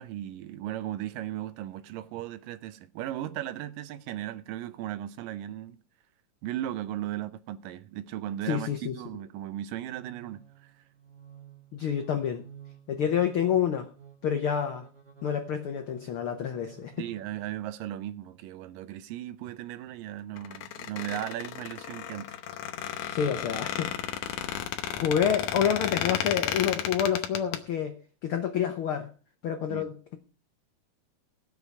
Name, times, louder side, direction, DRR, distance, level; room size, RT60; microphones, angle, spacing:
voice 1, 0.0-5.8 6.4-10.7 17.0-22.4 29.7-29.9, right 12 dB, 80° right, 2.4 m, -36 dB
voice 2, 8.5-8.9 11.7-12.4 12.9-13.8 14.2-14.9 15.2-16.9 23.1-23.9 24.9-29.1 29.4-30.2, left 8 dB, 90° left, 1.1 m, -28 dB
sound 1, 9.8-17.7, right 8 dB, 35° right, 2.2 m, -52 dB
Squeak, 20.4-27.6, left 10 dB, 70° left, 2.1 m, -33 dB
18.5 x 6.9 x 4.7 m
omnidirectional pair, 3.9 m